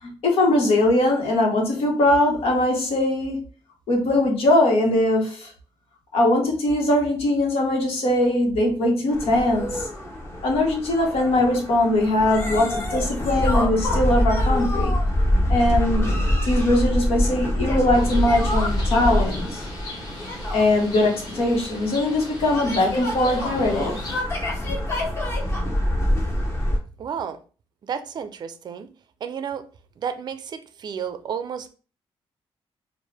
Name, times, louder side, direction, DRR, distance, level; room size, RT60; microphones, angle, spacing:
voice 1, 0.0-3.4 3.9-5.5 6.1-9.9 10.4-14.9 15.5-19.7 20.5-24.0, left 1 dB, 75° left, 1.5 m, -21 dB
sound 1, 9.1-26.8, left 1 dB, 25° left, 1.1 m, -25 dB
Bird, 17.9-24.2, left 1 dB, 40° left, 1.4 m, -38 dB
voice 2, 27.0-27.4 27.8-28.9 29.2-29.6 30.0-31.7, right 7 dB, 45° right, 0.4 m, -31 dB
4.6 x 2.5 x 3.4 m
cardioid pair, 150°, 10 cm